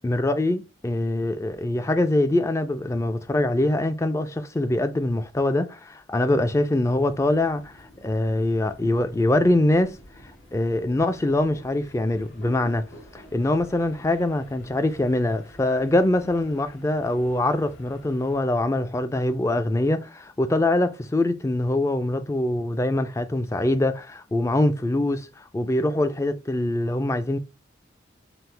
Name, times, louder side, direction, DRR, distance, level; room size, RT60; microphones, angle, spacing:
voice 1, 0.0-10.0 10.5-12.8 13.1-27.4, left 1 dB, 15° left, 0.3 m, -23 dB
sound 1, 6.8-18.4, left 1 dB, 85° left, 1.6 m, -49 dB
5.8 x 2.0 x 3.3 m
head